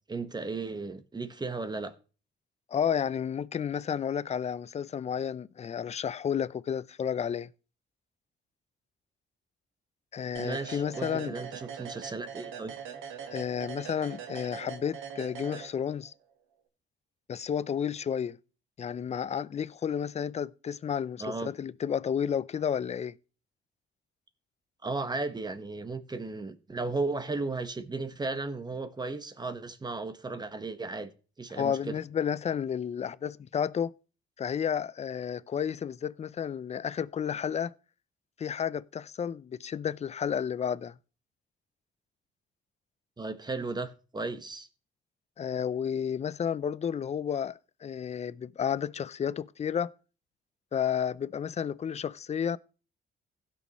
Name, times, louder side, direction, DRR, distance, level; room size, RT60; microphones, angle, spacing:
voice 1, 0.1-1.9 10.4-12.7 21.2-21.5 24.8-31.1 31.4-32.0 43.2-44.7, right 3 dB, 20° right, 1.2 m, -35 dB
voice 2, 2.7-7.5 10.1-11.3 13.3-16.1 17.3-18.4 18.8-23.1 31.6-33.9 34.4-37.7 38.4-40.9 45.4-49.9 50.7-52.6, left 8 dB, 35° left, 0.5 m, -31 dB
sound 1, 10.3-16.1, right 7 dB, 85° right, 1.6 m, -42 dB
16.5 x 6.3 x 3.0 m
cardioid pair, 90°, 20 cm